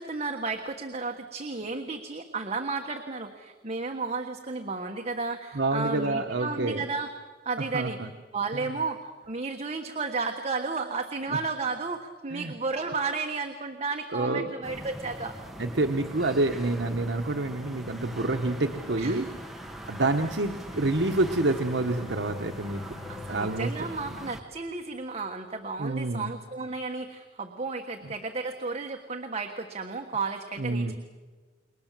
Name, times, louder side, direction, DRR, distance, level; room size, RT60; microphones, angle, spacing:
voice 1, 0.0-7.1 7.4-8.0 8.3-15.3 19.0-19.2 23.1-30.9, right 4 dB, 35° right, 4 dB, 1.4 m, -33 dB
voice 2, 5.5-6.8 7.7-8.1 11.3-11.4 12.3-12.5 14.1-14.5 15.6-19.3 19.8-22.8 23.3-23.7 25.8-26.3 30.6-30.9, right 2 dB, 70° right, 4 dB, 1.1 m, -27 dB
sound 1, 14.6-24.4, equal, ahead, 1.6 m, -42 dB
Bowed string instrument, 20.6-25.1, left 3 dB, 30° left, 2.3 m, -48 dB
29.0 x 23.0 x 7.5 m, 1.4 s
head